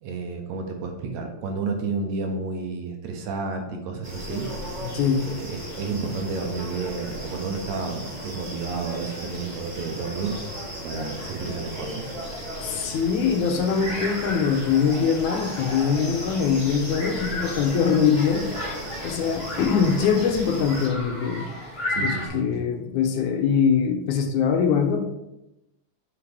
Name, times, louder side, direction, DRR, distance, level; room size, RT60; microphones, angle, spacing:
voice 1, 0.0-4.5 5.3-12.0 21.9-22.7, right 4 dB, 75° right, 3 dB, 2.1 m, -31 dB
sound 1, 4.0-20.9, right 1 dB, 35° right, 0.7 m, -36 dB
voice 2, 4.8-5.2 12.6-18.7 19.0-21.5 22.0-25.1, left 6 dB, 80° left, 5 dB, 2.2 m, -23 dB
sound 2, 8.8-14.8, left 1 dB, 50° left, 1.1 m, -44 dB
sound 3, 12.5-22.3, left 1 dB, 35° left, 1.0 m, -35 dB
7.9 x 4.9 x 3.4 m, 0.91 s
omnidirectional pair, 3.4 m